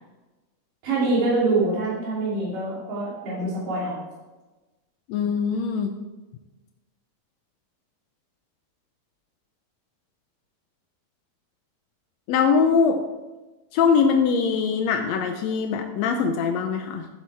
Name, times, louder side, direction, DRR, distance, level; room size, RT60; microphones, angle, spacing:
voice 1, 0.8-4.0, right 2 dB, 75° right, -7 dB, 4.8 m, -25 dB
voice 2, 5.1-5.9 12.3-13.0 13.7-17.1, left 5 dB, 85° left, 5 dB, 1.5 m, -22 dB
13.0 x 7.6 x 3.5 m, 1.1 s
omnidirectional pair, 3.8 m